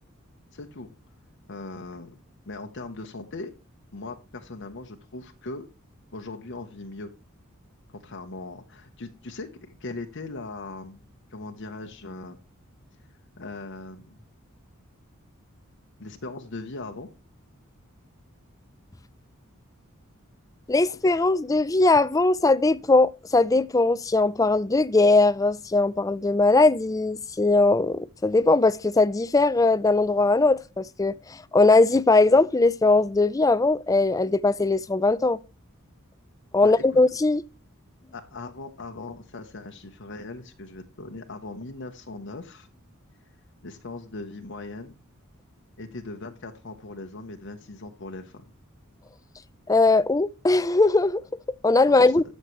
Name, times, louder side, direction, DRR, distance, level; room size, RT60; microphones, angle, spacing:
voice 1, 0.5-0.9 1.5-2.2 2.5-3.5 3.9-5.7 6.1-7.1 8.0-11.0 11.3-12.4 13.4-14.2 16.0-17.1 36.6-37.0 38.1-42.7 43.6-44.9 45.8-48.4 51.9-52.1, left 3 dB, 60° left, 0.9 m, -39 dB
voice 2, 20.7-35.4 36.5-37.4 49.7-51.2 51.6-52.2, left 3 dB, 15° left, 0.4 m, -20 dB
13.5 x 6.5 x 3.1 m
head